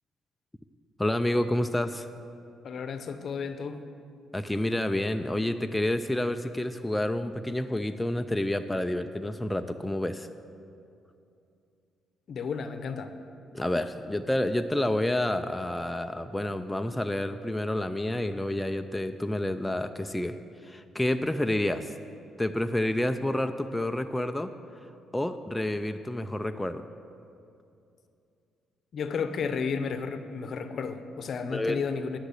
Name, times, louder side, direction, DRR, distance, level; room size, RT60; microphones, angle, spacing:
voice 1, 1.0-2.1 4.3-10.3 13.5-20.4 20.6-21.9 22.4-24.5 25.1-26.8 31.5-31.8, left 1 dB, 10° left, 7 dB, 0.4 m, -29 dB
voice 2, 2.6-3.8 12.3-13.1 28.9-32.2, left 5 dB, 55° left, 9 dB, 0.7 m, -32 dB
10.0 x 5.9 x 8.2 m, 2.6 s
cardioid pair, 90°, 0 cm